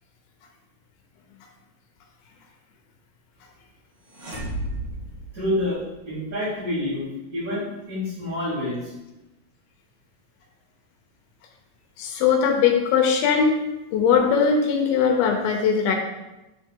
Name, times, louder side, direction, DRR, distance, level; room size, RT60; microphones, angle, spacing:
sound 1, 4.1-6.1, right 1 dB, 60° right, 1.1 m, -33 dB
voice 1, 5.3-5.8 6.0-8.9, left 1 dB, 25° right, -14 dB, 2.3 m, -28 dB
voice 2, 12.0-13.6 13.9-16.0, left 6 dB, 85° left, 1 dB, 2.6 m, -20 dB
7.3 x 4.0 x 3.6 m, 1.0 s
omnidirectional pair, 4.3 m